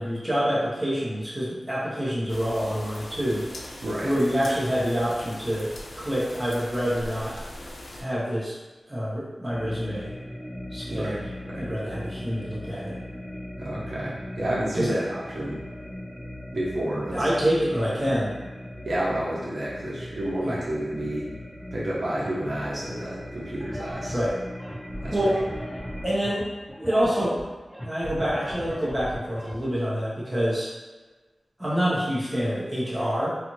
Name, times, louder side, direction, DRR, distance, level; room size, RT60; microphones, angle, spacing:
voice 1, 0.0-3.4 4.0-5.7 5.9-7.3 8.0-8.6 8.9-10.1 10.7-11.2 11.5-12.9 14.7-15.0 17.1-18.3 20.4-20.5 24.1-24.4 25.1-25.4 26.0-26.5 26.8-27.4 27.8-30.7 31.6-33.4, equal, 15° right, -8 dB, 0.9 m, -26 dB
sound 1, 2.3-8.0, left 1 dB, 75° left, 0.4 m, -41 dB
sound 2, 9.5-26.1, left 1 dB, 25° left, 0.7 m, -39 dB
voice 2, 13.6-15.6 16.5-17.2 18.9-21.2 21.7-24.2 25.0-25.3, right 1 dB, 70° right, -7 dB, 0.7 m, -30 dB
sound 3, 23.6-29.6, equal, 5° left, 1.3 m, -38 dB
2.5 x 2.4 x 3.0 m, 1.3 s
wide cardioid pair, 80°, 0 cm